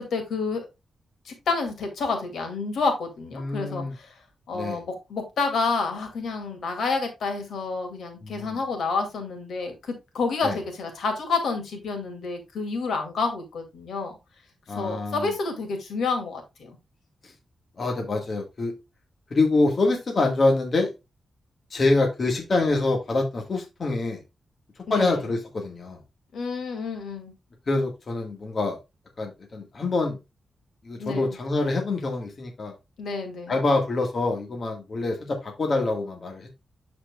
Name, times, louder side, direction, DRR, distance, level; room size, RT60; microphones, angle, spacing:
voice 1, 0.1-0.6 1.2-4.1 4.5-14.1 14.8-16.8 24.9-25.2 26.3-27.3 31.0-31.4 33.0-33.6, left 4 dB, 85° left, 4 dB, 2.2 m, -29 dB
voice 2, 3.4-3.9 4.5-4.8 8.2-8.6 10.4-10.6 14.7-15.3 17.8-18.7 19.3-20.9 21.7-24.2 24.9-26.0 27.7-28.8 29.2-30.2 30.8-32.7 33.5-36.5, left 2 dB, 45° left, 2 dB, 1.5 m, -25 dB
12.0 x 4.3 x 2.3 m, 0.23 s
cardioid pair, 100°, 0 cm